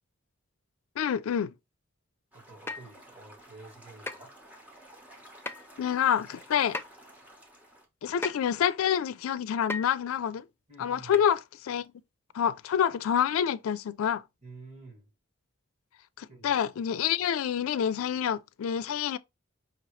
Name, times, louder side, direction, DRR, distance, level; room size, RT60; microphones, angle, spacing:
voice 1, 1.0-1.5 5.8-6.8 8.0-10.4 10.8-11.9 12.3-14.2 16.2-19.2, left 8 dB, 90° left, 0.3 m, -27 dB
sound 1, 2.3-7.8, right 1 dB, 10° right, 1.0 m, -53 dB
voice 2, 2.3-4.3 10.7-11.2 14.4-15.1 16.3-16.5, right 3 dB, 30° right, 1.9 m, -49 dB
sound 2, 2.7-2.9 4.1-4.2 5.5-5.7 6.7-6.8 8.2-8.5 9.7-9.9 11.1-11.3 11.8-11.9, left 3 dB, 10° left, 0.3 m, -35 dB
5.3 x 2.9 x 3.0 m
head